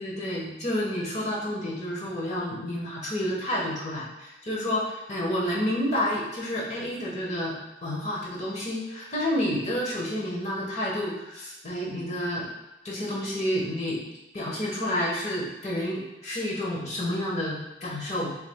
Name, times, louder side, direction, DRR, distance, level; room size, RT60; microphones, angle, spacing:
voice 1, 0.0-7.6 7.8-12.5 12.8-14.0 14.3-18.3, left 1 dB, 40° left, -3 dB, 1.2 m, -29 dB
6.9 x 3.3 x 2.3 m, 0.98 s
head